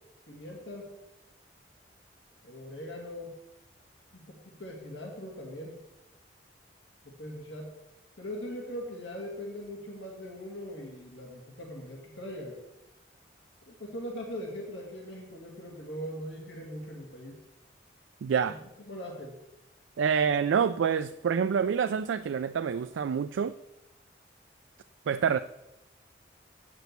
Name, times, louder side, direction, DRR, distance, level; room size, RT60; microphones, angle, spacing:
voice 1, 0.3-0.9 2.4-3.3 4.1-5.8 7.0-7.7 8.2-12.6 13.7-17.4 18.5-19.4, equal, 80° left, 0 dB, 2.0 m, -41 dB
voice 2, 18.2-18.6 20.0-23.6 25.1-25.4, right 7 dB, 85° right, 10 dB, 0.3 m, -27 dB
8.2 x 6.1 x 8.1 m, 0.96 s
head